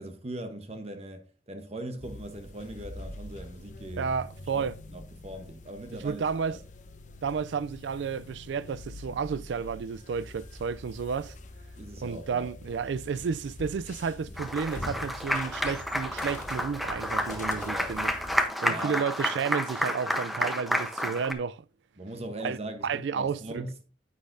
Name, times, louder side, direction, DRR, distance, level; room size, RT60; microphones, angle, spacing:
voice 1, 0.0-4.1 4.5-6.2 6.5-6.6 11.8-12.5 17.7-17.9 18.6-19.0 22.0-23.8, right 1 dB, 35° right, 0.9 m, -40 dB
sound 1, 2.0-18.5, left 2 dB, 45° left, 1.0 m, -44 dB
voice 2, 4.0-4.8 6.0-6.6 7.2-11.4 12.0-18.1 18.6-21.6 22.4-22.6 22.8-23.6, right 6 dB, 80° right, 0.4 m, -32 dB
Applause, 14.4-21.3, equal, ahead, 0.8 m, -30 dB
9.8 x 8.4 x 2.6 m
head